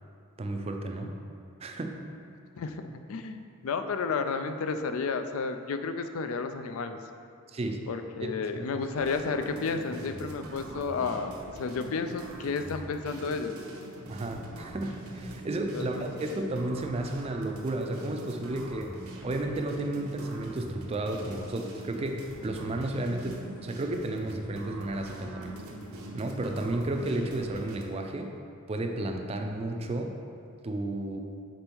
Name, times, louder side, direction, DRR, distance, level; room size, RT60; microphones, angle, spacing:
voice 1, 0.4-1.2 1.6-2.0 7.5-7.8 8.2-8.3 8.7-8.8 14.1-25.6 26.1-28.3 28.7-30.2 30.6-31.2, right 2 dB, 25° right, 4 dB, 0.4 m, -32 dB
voice 2, 3.1-7.0 7.9-13.6 15.7-16.0, left 4 dB, 75° left, 8 dB, 0.4 m, -32 dB
sound 1, 8.9-27.8, right 1 dB, 85° right, 0.8 m, -43 dB
5.2 x 4.3 x 4.5 m, 2.4 s
head